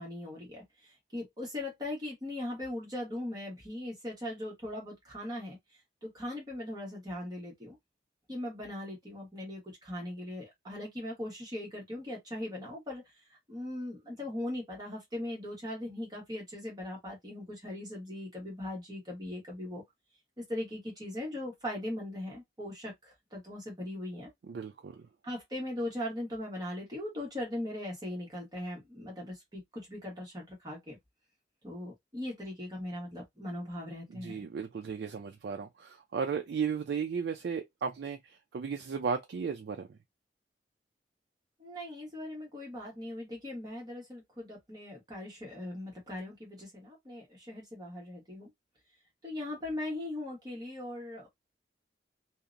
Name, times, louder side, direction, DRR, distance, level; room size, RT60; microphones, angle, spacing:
voice 1, 0.0-5.6 6.0-7.8 8.3-19.8 20.4-24.3 25.2-31.0 31.6-34.4 41.6-48.5 49.2-51.3, left 1 dB, 20° right, 1.1 m, -39 dB
voice 2, 24.5-25.1 34.1-40.0, right 6 dB, 65° right, 0.3 m, -35 dB
2.7 x 2.0 x 2.4 m
head